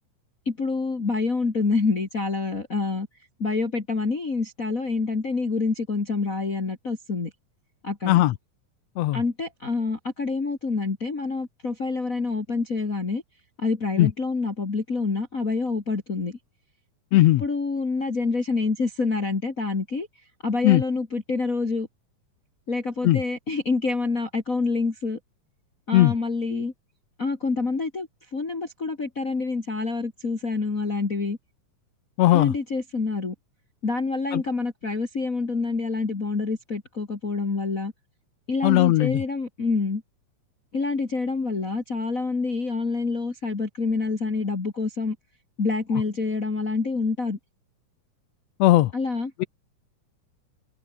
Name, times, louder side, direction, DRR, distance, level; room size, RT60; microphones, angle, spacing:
voice 1, 0.5-3.1 3.4-7.3 7.8-8.2 9.1-13.2 13.6-16.4 17.4-20.1 20.4-21.9 22.7-25.2 25.9-26.7 27.2-31.4 32.3-33.3 33.8-37.9 38.5-40.0 40.7-45.2 45.6-47.4 48.9-49.3, left 4 dB, 25° left, 2.3 m, -27 dB
voice 2, 17.1-17.4 20.6-20.8 23.0-23.2 25.9-26.1 32.2-32.5 34.3-34.4 38.6-39.2 48.6-48.9 49.4-49.5, left 16 dB, 85° left, 1.5 m, -18 dB
omnidirectional pair, 4.0 m